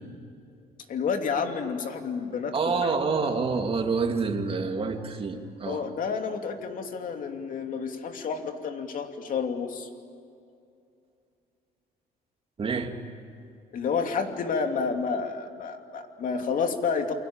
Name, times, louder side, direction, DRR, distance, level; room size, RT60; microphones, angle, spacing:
voice 1, 0.9-2.9 5.6-9.9 13.7-17.1, left 5 dB, 55° left, 5 dB, 2.9 m, -30 dB
voice 2, 2.5-5.8 12.6-12.9, right 4 dB, 35° right, 4 dB, 2.9 m, -27 dB
28.5 x 23.5 x 8.9 m, 2.6 s
cardioid pair, 110°, 17 cm